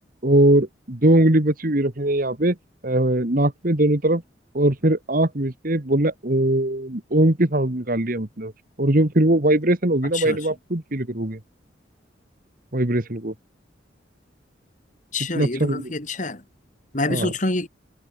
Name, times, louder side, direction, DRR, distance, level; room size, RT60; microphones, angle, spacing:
voice 1, 0.2-2.6 2.8-4.2 4.5-8.5 8.8-11.4 12.7-13.3 15.3-15.9 17.1-17.3, right 1 dB, 50° right, 2.0 m, -20 dB
voice 2, 15.1-16.4 16.9-17.7, left 2 dB, 40° left, 3.2 m, -26 dB
head